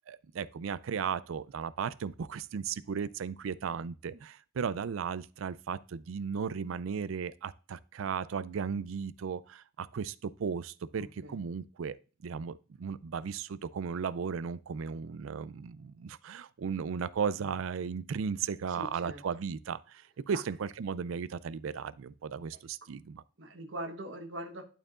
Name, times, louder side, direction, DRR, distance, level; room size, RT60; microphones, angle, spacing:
voice 1, 0.1-12.0 12.2-23.2, right 6 dB, 90° right, 0.4 m, -36 dB
voice 2, 11.0-11.4 18.8-19.2 20.3-20.4 23.4-24.6, right 1 dB, 70° right, 1.2 m, -41 dB
11.5 x 4.5 x 2.5 m
head